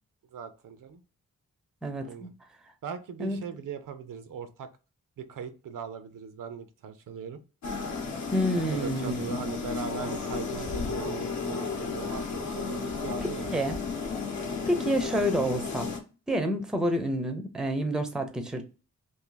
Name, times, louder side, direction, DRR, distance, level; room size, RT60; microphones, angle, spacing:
voice 1, 0.3-1.0 2.0-2.3 2.8-4.7 5.2-7.4 8.7-13.6, right 7 dB, 75° right, 0.5 m, -39 dB
voice 2, 1.8-2.3 3.2-3.4 8.3-9.4 13.5-13.8 14.7-15.9 16.3-18.6, equal, ahead, 0.4 m, -28 dB
sound 1, 7.6-16.0, left 4 dB, 60° left, 0.8 m, -33 dB
2.7 x 2.6 x 3.8 m
wide cardioid pair, 140°, 32 cm